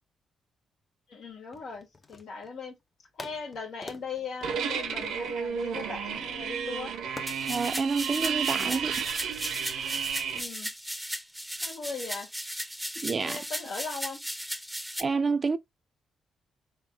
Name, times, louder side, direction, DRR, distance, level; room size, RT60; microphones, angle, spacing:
voice 1, 1.1-2.8 3.1-6.9 10.3-10.7 11.6-12.3 13.2-14.2, left 4 dB, 70° left, 1.8 m, -39 dB
sound 1, 1.5-2.6 3.2-5.7 7.2-7.6, left 3 dB, 35° left, 0.8 m, -47 dB
sound 2, 4.4-10.4, right 7 dB, 80° right, 0.7 m, -32 dB
sound 3, 7.3-15.0, equal, ahead, 0.7 m, -36 dB
voice 2, 7.5-9.0 13.0-13.4 15.0-15.6, right 4 dB, 40° right, 0.4 m, -28 dB
3.6 x 3.5 x 3.4 m
supercardioid pair, 65°, 0 cm